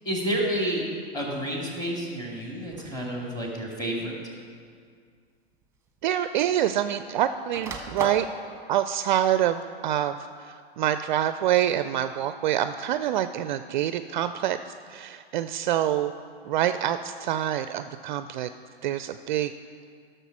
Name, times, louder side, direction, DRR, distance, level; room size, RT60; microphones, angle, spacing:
voice 1, 0.0-0.8 1.1-4.2, right 1 dB, 10° left, -2 dB, 2.5 m, -29 dB
sound 1, 2.7-3.0 4.0-4.1 5.5-5.6 5.9-7.0 7.3-8.3, right 3 dB, 10° right, 1.2 m, -35 dB
voice 2, 6.0-8.3 8.7-16.1 16.5-18.5 18.8-19.5, right 11 dB, 50° right, 11 dB, 0.4 m, -26 dB
11.5 x 6.6 x 6.0 m, 2.2 s
hypercardioid pair, 115°, 32 cm